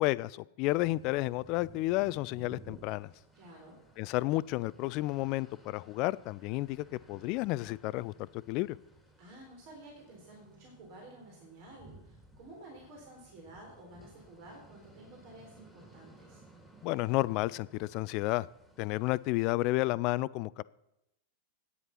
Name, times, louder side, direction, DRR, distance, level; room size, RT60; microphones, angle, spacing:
voice 1, 0.0-3.1 4.0-8.8 16.8-18.5 18.8-20.6, left 19 dB, 40° left, 20 dB, 0.4 m, -31 dB
sound 1, 0.7-19.4, right 2 dB, ahead, 2.6 m, -57 dB
voice 2, 3.3-3.8 9.2-16.4, right 1 dB, 45° right, 0 dB, 3.7 m, -52 dB
11.0 x 9.5 x 5.8 m, 0.86 s
figure-of-eight pair, 90°, 0 cm